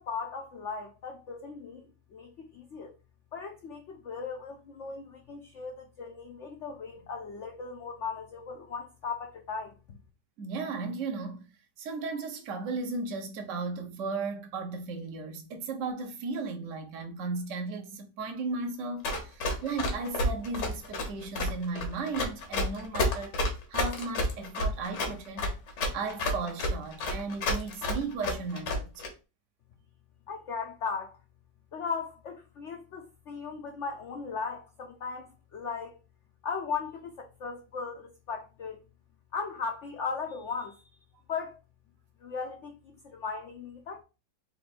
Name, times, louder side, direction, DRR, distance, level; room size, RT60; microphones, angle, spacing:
voice 1, 0.0-2.9 3.3-10.0 30.3-31.2 31.7-36.0 36.4-38.8 39.3-40.8 41.3-41.6 42.2-44.0, left 5 dB, 60° left, 0.7 m, -37 dB
voice 2, 10.4-11.5 11.8-23.4 23.7-25.5 25.9-29.0, right 4 dB, 55° right, 1.1 m, -35 dB
Run, 19.0-29.1, left 1 dB, 80° left, 1.8 m, -30 dB
4.3 x 2.6 x 4.2 m
omnidirectional pair, 1.8 m